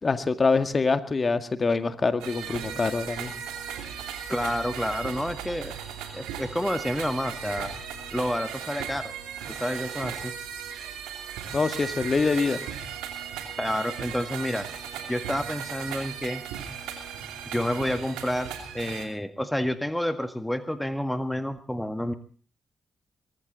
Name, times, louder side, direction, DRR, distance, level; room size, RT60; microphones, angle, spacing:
voice 1, 0.0-3.3 11.5-12.6, left 4 dB, 40° left, 9 dB, 2.0 m, -25 dB
sound 1, 2.2-19.1, right 8 dB, 85° right, 2.8 m, -37 dB
voice 2, 4.3-5.8 6.1-7.7 8.1-9.1 9.6-10.3 13.6-14.7 15.1-16.4 17.5-22.1, left 1 dB, 5° left, 9 dB, 1.8 m, -29 dB
23.0 x 14.5 x 4.1 m, 0.43 s
hypercardioid pair, 40°, 0 cm